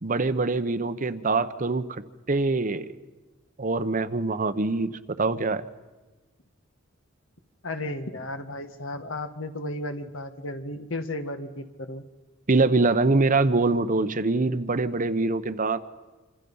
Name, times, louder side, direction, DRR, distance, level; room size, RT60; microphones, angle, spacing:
voice 1, 0.0-2.0 2.3-2.9 3.6-5.7 12.5-15.8, right 3 dB, 40° right, 12 dB, 0.9 m, -24 dB
voice 2, 7.6-12.0, left 1 dB, 70° left, 8 dB, 1.7 m, -34 dB
27.0 x 26.0 x 5.5 m, 1.2 s
head